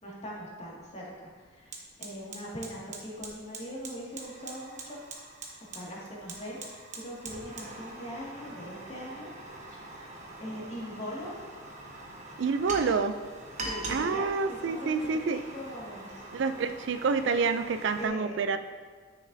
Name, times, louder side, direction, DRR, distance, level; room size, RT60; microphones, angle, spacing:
voice 1, 0.0-5.0 5.7-6.6 7.0-9.3 9.7-9.8 10.4-11.3 13.6-16.2 18.0-18.6, equal, 35° left, -5 dB, 2.0 m, -41 dB
Fire, 0.6-0.7 1.1-18.1, right 2 dB, 40° right, 1.1 m, -43 dB
voice 2, 12.4-13.2 13.9-15.4 16.3-18.6, right 4 dB, 65° right, 10 dB, 0.4 m, -28 dB
12.0 x 6.4 x 2.7 m, 1.5 s
head